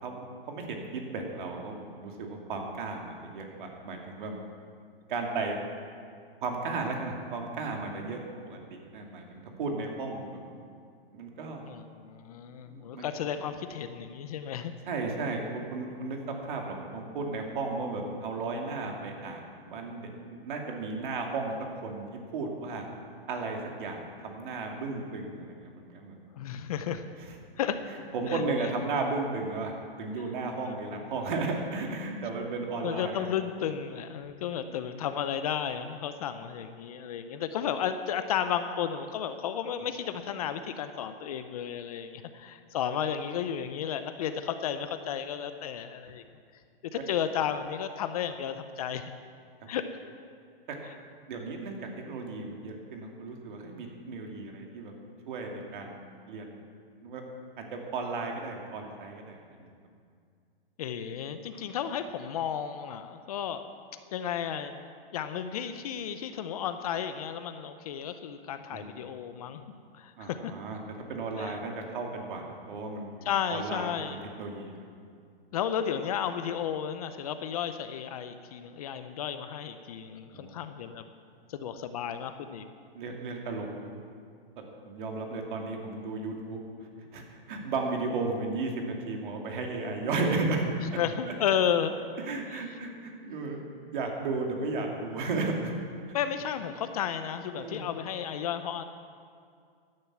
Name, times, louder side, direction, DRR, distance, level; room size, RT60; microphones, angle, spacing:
voice 1, 0.0-4.3 5.1-5.6 6.4-8.2 8.5-10.4 11.1-11.6 12.6-13.1 14.9-20.1 20.4-21.5 21.8-22.8 23.3-26.1 28.1-33.3 34.6-34.8 50.7-50.8 51.3-54.9 55.3-56.0 56.3-56.6 57.0-57.2 57.6-59.7 68.7-68.9 70.2-70.8 71.1-74.0 74.4-74.8 80.3-80.5 82.9-84.0 84.8-91.0 92.2-93.6 93.9-95.7 97.6-97.8, right 3 dB, 55° right, 1 dB, 2.7 m, -34 dB
voice 2, 11.6-14.7 26.3-27.0 27.6-27.8 28.3-28.5 32.8-46.2 46.9-49.0 49.7-49.8 50.8-50.9 60.8-63.7 64.1-64.8 65.1-69.6 70.0-70.5 71.4-71.6 73.2-74.2 75.5-81.0 81.5-82.6 91.0-91.9 92.5-92.7 96.1-98.8, left 8 dB, 40° left, 9 dB, 0.7 m, -33 dB
15.5 x 10.5 x 6.1 m, 2.2 s
hypercardioid pair, 160°, 31 cm